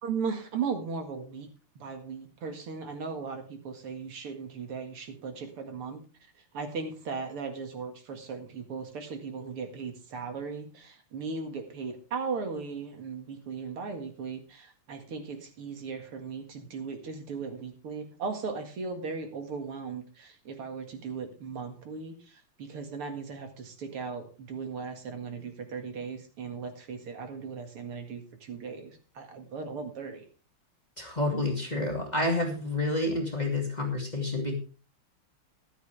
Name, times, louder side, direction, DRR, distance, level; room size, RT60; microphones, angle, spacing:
voice 1, 0.0-1.5 1.8-6.0 6.5-30.2, right 5 dB, 80° right, 5 dB, 2.9 m, -37 dB
voice 2, 31.0-34.6, left 2 dB, 20° left, 1 dB, 2.5 m, -29 dB
14.0 x 12.0 x 3.4 m, 0.36 s
omnidirectional pair, 2.4 m